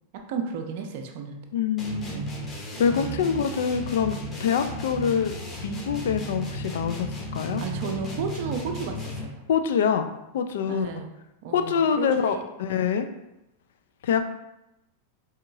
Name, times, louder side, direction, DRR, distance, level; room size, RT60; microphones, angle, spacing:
voice 1, 0.1-1.4 2.1-2.3 2.9-3.2 7.6-9.4 10.6-11.1 11.4-12.4, right 5 dB, 50° right, 4 dB, 0.5 m, -33 dB
voice 2, 1.5-2.2 2.8-5.4 5.6-7.6 9.5-10.1 10.3-10.9 11.5-13.1 14.0-14.3, left 7 dB, 60° left, 8 dB, 0.3 m, -25 dB
sound 1, 1.8-9.4, equal, 20° left, 0.8 m, -35 dB
4.4 x 2.8 x 2.4 m, 0.88 s
figure-of-eight pair, 90°, 0 cm